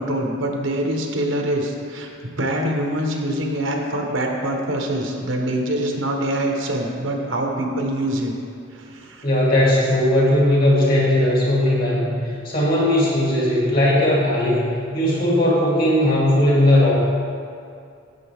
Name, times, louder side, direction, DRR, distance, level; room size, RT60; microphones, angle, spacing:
voice 1, 0.0-2.1 2.4-8.3 8.7-9.3, right 1 dB, 70° right, 1 dB, 1.2 m, -24 dB
voice 2, 9.2-12.1 12.4-14.6 14.9-16.9, left 1 dB, 45° left, -5 dB, 2.6 m, -18 dB
11.0 x 8.4 x 3.6 m, 2.4 s
head